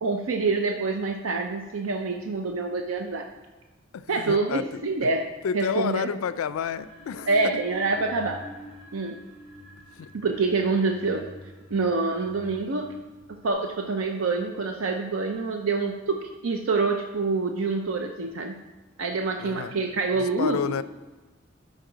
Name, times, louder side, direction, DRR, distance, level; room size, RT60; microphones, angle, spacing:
voice 1, 0.0-3.3 4.1-5.3 5.5-6.1 7.3-8.4 8.9-9.2 10.1-11.3 11.7-13.0 13.3-18.6 19.0-20.6, right 3 dB, 75° right, 4 dB, 0.5 m, -26 dB
voice 2, 3.9-5.1 5.4-7.3 9.9-10.1 19.4-19.7 20.1-20.8, left 7 dB, 85° left, 15 dB, 0.4 m, -30 dB
sound 1, 6.6-13.5, equal, 40° right, 2.2 m, -46 dB
12.5 x 4.2 x 3.9 m, 1.2 s
head